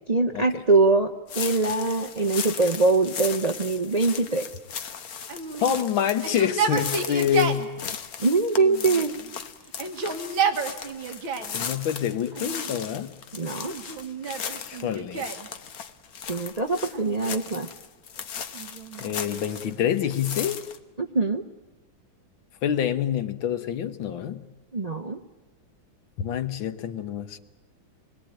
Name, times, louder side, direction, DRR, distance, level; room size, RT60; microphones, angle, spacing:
voice 1, 0.1-4.5 8.2-9.1 13.3-13.7 16.3-17.7 21.0-21.4 24.7-25.2, right 3 dB, 55° right, 0.4 m, -23 dB
sound 1, 1.3-19.8 20.1-20.8, left 7 dB, 55° left, 1.4 m, -37 dB
Yell, 5.3-7.7 8.6-9.3 9.7-11.6 12.3-13.0 13.7-15.5 16.8-17.7 18.5-20.3, right 5 dB, 75° right, 2.5 m, -31 dB
voice 2, 5.6-7.8 11.5-13.1 14.6-15.3 19.0-20.6 22.6-24.4 26.2-27.4, left 9 dB, 75° left, 1.9 m, -27 dB
26.0 x 22.0 x 9.1 m
omnidirectional pair, 2.2 m